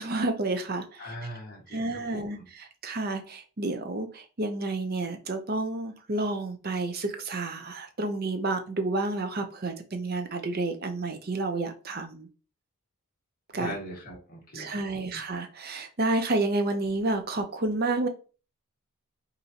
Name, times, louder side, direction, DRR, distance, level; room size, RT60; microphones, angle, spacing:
voice 1, 0.0-1.1 1.7-2.4 2.8-12.3 13.5-13.7 14.5-18.1, right 2 dB, 45° right, 6 dB, 0.6 m, -30 dB
voice 2, 1.0-2.4 13.6-15.2, left 1 dB, 40° left, -4 dB, 1.9 m, -41 dB
5.4 x 2.7 x 2.9 m, 0.35 s
head